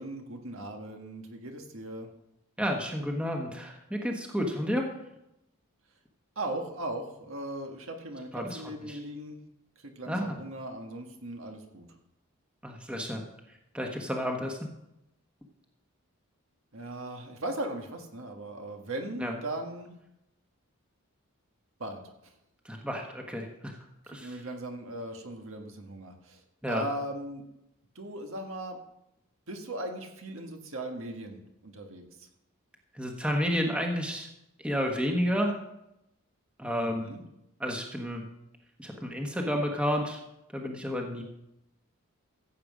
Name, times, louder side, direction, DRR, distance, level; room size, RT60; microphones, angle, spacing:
voice 1, 0.0-2.1 6.3-9.4 9.8-11.9 16.7-19.9 21.8-22.3 24.0-26.4 26.7-27.4 27.9-28.8 29.5-32.3 36.8-37.2, right 1 dB, 65° right, 3 dB, 1.7 m, -38 dB
voice 2, 2.6-4.9 8.3-8.6 8.9-9.0 10.1-10.4 12.6-13.2 13.7-14.6 19.2-19.3 22.6-23.8 24.1-24.3 26.6-26.8 32.9-34.3 34.6-35.5 36.6-37.1 37.6-38.2 38.8-40.2 40.5-41.2, equal, 5° right, 2 dB, 1.2 m, -31 dB
15.0 x 7.7 x 5.0 m, 0.85 s
head